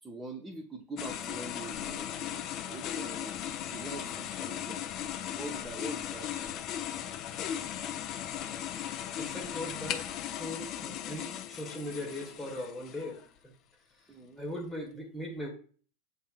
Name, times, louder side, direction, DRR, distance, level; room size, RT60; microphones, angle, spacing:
voice 1, 0.0-3.4 3.7-4.8 5.3-6.5 14.1-14.4, right 2 dB, 10° right, -1 dB, 0.7 m, -44 dB
sound 1, 1.0-13.3, left 10 dB, 35° left, 0.4 m, -37 dB
voice 2, 9.2-10.1 10.4-13.5 14.0-15.5, left 1 dB, 10° left, -2 dB, 1.1 m, -39 dB
7.9 x 2.7 x 2.4 m, 0.42 s
figure-of-eight pair, 90°, 0 cm